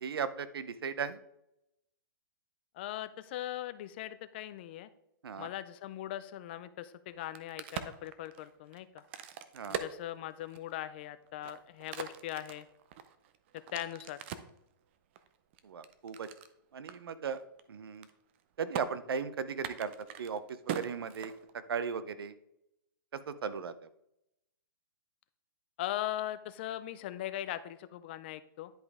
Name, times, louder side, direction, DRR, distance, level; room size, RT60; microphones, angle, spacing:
voice 1, 0.0-1.2 5.2-5.5 9.5-9.8 15.6-16.3 16.7-17.4 17.7-18.1 18.6-19.9 20.2-21.3 21.7-22.3 23.1-23.7, right 6 dB, 80° right, 14 dB, 0.8 m, -37 dB
voice 2, 2.7-4.9 5.4-9.0 9.7-12.7 13.7-14.2 25.8-28.7, left 13 dB, 25° left, 13 dB, 0.4 m, -40 dB
Crack, 7.1-10.8 11.3-14.6 15.2-16.5 16.9-17.0 17.3-17.6 17.9-18.4 18.7-18.9 19.5-21.8, right 9 dB, 30° right, 0.5 m, -42 dB
10.5 x 5.1 x 3.6 m, 0.81 s
hypercardioid pair, 160°, 12 cm